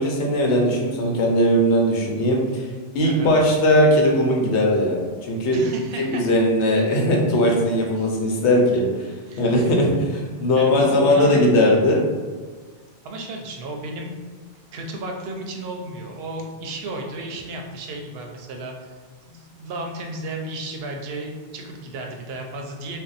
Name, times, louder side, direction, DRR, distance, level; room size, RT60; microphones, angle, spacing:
voice 1, 0.0-2.7 2.9-5.6 6.0-8.8 9.4-12.0, left 1 dB, 85° left, 0 dB, 0.9 m, -19 dB
voice 2, 3.0-3.4 5.5-6.2 8.0-8.1 9.3-9.5 10.6-11.4 13.0-14.2 14.7-18.9 19.2-23.0, right 2 dB, 70° right, 2 dB, 0.8 m, -33 dB
2.7 x 2.1 x 3.8 m, 1.4 s
omnidirectional pair, 1.1 m